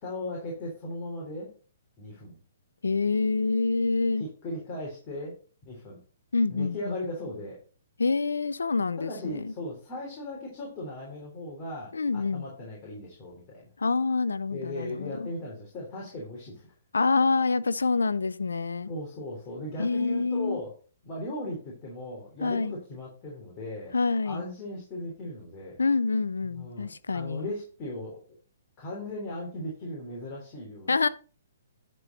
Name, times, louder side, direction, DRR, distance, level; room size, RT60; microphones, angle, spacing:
voice 1, 0.0-1.5 2.0-2.4 4.2-5.3 5.7-6.0 6.5-7.6 9.0-13.7 14.5-16.7 18.9-20.7 21.0-23.9 24.3-25.8 26.4-28.2 28.8-31.0, left 1 dB, 30° left, 3.4 m, -37 dB
voice 2, 2.8-4.2 6.3-7.0 8.0-9.5 11.9-12.5 13.8-15.3 16.9-18.9 19.8-20.6 22.4-22.7 23.9-24.4 25.8-27.5 30.9-31.1, left 4 dB, 80° left, 0.6 m, -26 dB
11.0 x 4.6 x 5.3 m
figure-of-eight pair, 130°, 0 cm